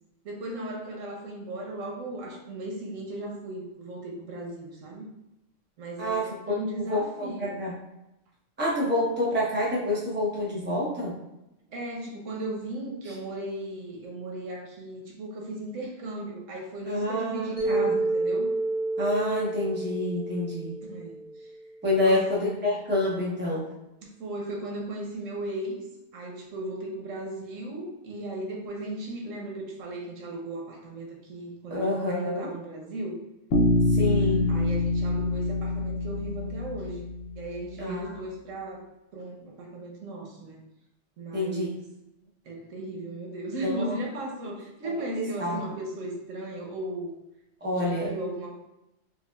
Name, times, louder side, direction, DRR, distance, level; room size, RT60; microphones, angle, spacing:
voice 1, 0.2-5.1 5.8-7.5 11.7-18.5 20.8-21.5 21.9-22.3 24.0-25.8 26.1-33.2 34.5-37.0 37.4-38.8 39.1-40.6 41.2-41.8 42.4-47.1 47.7-48.5, right 1 dB, 85° right, -1 dB, 1.2 m, -36 dB
voice 2, 6.0-6.6 6.9-7.7 8.6-11.1 13.0-13.1 16.9-17.9 19.0-20.7 21.8-23.7 31.7-32.5 33.9-34.5 37.8-38.1 41.3-41.7 43.6-43.9 44.8-45.6 47.6-48.1, left 1 dB, 10° right, -5 dB, 0.7 m, -28 dB
Mallet percussion, 17.6-21.7, right 3 dB, 45° right, 1.0 m, -29 dB
Bass guitar, 33.5-37.5, left 2 dB, 65° left, 0.7 m, -25 dB
5.0 x 2.3 x 2.3 m, 0.89 s
omnidirectional pair, 1.3 m